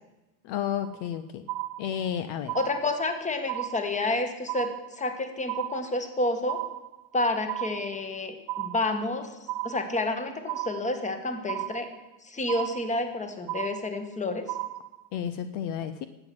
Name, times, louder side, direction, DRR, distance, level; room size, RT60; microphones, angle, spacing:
voice 1, 0.4-1.5 1.8-2.6 15.1-16.1, left 9 dB, 55° left, 11 dB, 0.9 m, -31 dB
sound 1, 0.8-1.2 1.5-2.2 2.5-3.2 3.5-4.2 4.5-5.2 5.5-6.2 6.5-7.2 7.5-8.2 8.5-9.2 9.5-10.2 10.5-11.2 11.5-12.2 12.5-13.2 13.5-14.2 14.5-15.2, right 17 dB, 45° right, 0.8 m, -35 dB
voice 2, 2.6-6.6 7.1-11.9 12.2-14.5, left 2 dB, 15° left, 7 dB, 1.6 m, -30 dB
11.5 x 8.0 x 7.8 m, 1.0 s
supercardioid pair, 115°, 49 cm